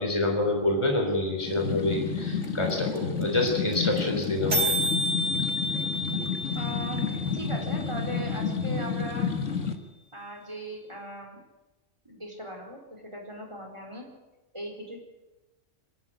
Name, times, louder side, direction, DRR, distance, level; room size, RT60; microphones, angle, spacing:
voice 1, 0.0-4.7, left 2 dB, 20° left, 1 dB, 3.6 m, -27 dB
sound 1, 1.4-9.7, left 5 dB, 70° left, 2.2 m, -30 dB
sound 2, 2.4-2.5 2.7-2.8 3.0-3.2 3.5-3.6 3.7-4.0 4.2-4.3 4.5-8.5, left 1 dB, 65° right, 3.8 m, -30 dB
voice 2, 6.5-9.3 10.1-11.4 12.0-14.1 14.5-15.0, equal, 20° right, 1 dB, 4.7 m, -39 dB
24.0 x 13.0 x 9.7 m, 1.1 s
omnidirectional pair, 1.3 m